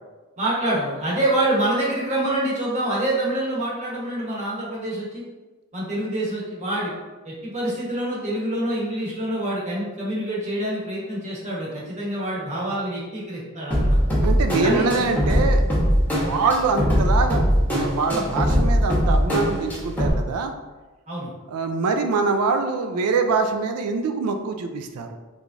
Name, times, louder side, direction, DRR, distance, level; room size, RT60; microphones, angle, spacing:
voice 1, 0.4-5.2 5.7-6.9 7.2-14.0 14.6-14.9 16.3-16.4 21.1-21.3, right 1 dB, 30° right, -6 dB, 1.0 m, -26 dB
sound 1, 13.7-20.1, equal, 10° left, 0.9 m, -21 dB
voice 2, 14.2-15.6 16.1-20.5 21.5-25.1, right 4 dB, 85° right, 6 dB, 0.4 m, -24 dB
3.4 x 3.1 x 2.5 m, 1.2 s
head